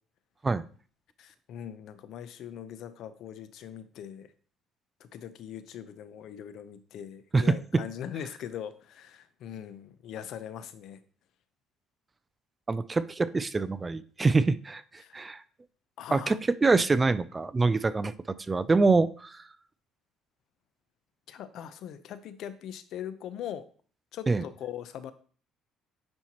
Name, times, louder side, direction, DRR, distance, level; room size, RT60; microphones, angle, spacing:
voice 1, 1.2-4.3 5.1-11.0 15.0-15.1 16.0-16.3 21.3-23.6 24.1-25.1, left 9 dB, 65° left, 12 dB, 0.6 m, -41 dB
voice 2, 7.3-7.8 12.7-15.4 16.1-18.1 18.5-19.4 24.3-24.4, right 3 dB, 20° right, 15 dB, 0.3 m, -25 dB
9.7 x 4.4 x 2.9 m, 0.44 s
cardioid pair, 110°, 0 cm